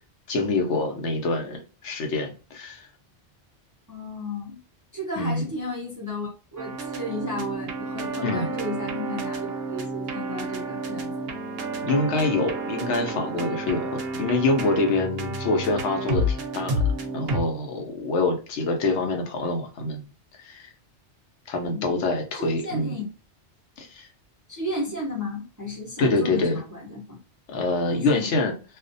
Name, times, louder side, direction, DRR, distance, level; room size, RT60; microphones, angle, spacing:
voice 1, 0.3-2.9 5.2-5.4 8.2-8.5 11.8-16.8 17.1-20.0 20.4-20.7 21.5-22.9 23.8-24.1 26.0-26.6 27.5-28.5, left 2 dB, 75° left, 0.9 m, -25 dB
voice 2, 3.9-4.6 4.9-11.3 21.6-22.0 22.3-23.0 24.5-27.2 27.9-28.3, left 1 dB, 25° right, 0.5 m, -34 dB
sound 1, 6.6-17.4, right 1 dB, 65° right, 0.7 m, -30 dB
2.4 x 2.0 x 2.5 m
omnidirectional pair, 1.2 m